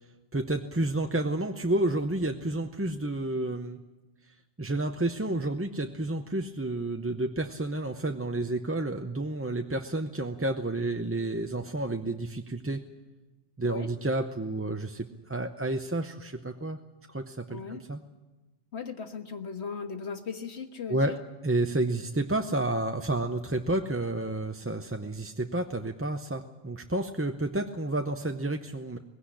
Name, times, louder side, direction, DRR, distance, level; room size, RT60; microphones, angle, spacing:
voice 1, 0.3-3.8 4.6-12.8 13.6-16.8 17.1-18.0 20.9-21.1 21.4-29.0, right 2 dB, 15° right, 5 dB, 0.6 m, -30 dB
voice 2, 17.5-17.8 18.7-21.2, left 5 dB, 80° left, 6 dB, 1.7 m, -37 dB
19.5 x 16.5 x 9.9 m, 1.2 s
omnidirectional pair, 1.1 m